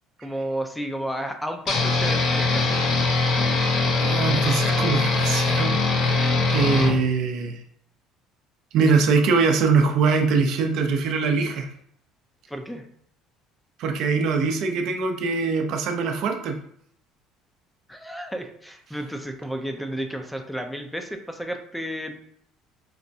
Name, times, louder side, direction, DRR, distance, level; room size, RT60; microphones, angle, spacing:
voice 1, 0.2-2.8 12.5-12.8 17.9-22.2, equal, 5° left, 5 dB, 0.4 m, -32 dB
sound 1, 1.7-6.9, left 3 dB, 60° left, 0.6 m, -22 dB
voice 2, 4.0-7.6 8.7-11.7 13.8-16.6, right 4 dB, 65° right, 4 dB, 0.5 m, -23 dB
4.1 x 2.2 x 2.6 m, 0.67 s
supercardioid pair, 95°, 0 cm